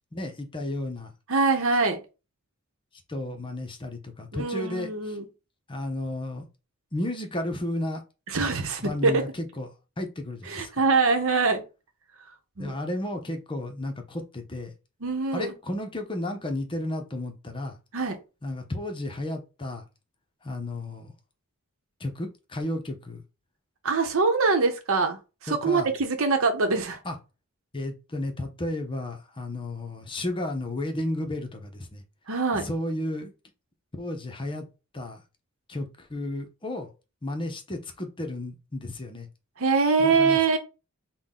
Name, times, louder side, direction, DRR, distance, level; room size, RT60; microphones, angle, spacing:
voice 1, 0.1-1.1 3.1-5.2 5.7-6.5 6.9-8.0 8.8-9.7 10.0-10.7 12.6-14.7 15.3-17.8 18.4-19.8 20.4-21.1 22.0-23.2 25.5-25.9 27.0-27.1 27.7-32.0 32.5-33.3 34.0-34.7 34.9-35.2 35.7-36.9 37.2-39.3 40.0-40.4, left 1 dB, 25° left, 0.7 m, -33 dB
voice 2, 1.3-2.0 4.3-5.3 8.3-9.2 10.5-11.6 12.6-12.7 15.0-15.5 17.9-18.2 23.8-25.2 25.4-27.0 32.3-32.7 39.6-40.6, right 4 dB, 65° right, 0.9 m, -23 dB
5.8 x 2.2 x 3.7 m
head